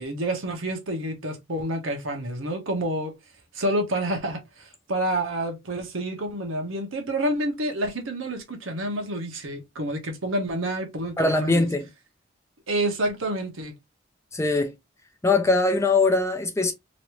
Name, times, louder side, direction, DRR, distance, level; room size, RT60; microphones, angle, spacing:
voice 1, 0.0-3.1 3.5-11.7 12.7-13.7, right 1 dB, 80° right, 1.0 m, -28 dB
voice 2, 11.2-11.8 14.3-14.7 15.2-16.7, left 3 dB, 15° left, 0.5 m, -21 dB
3.0 x 2.6 x 3.0 m
head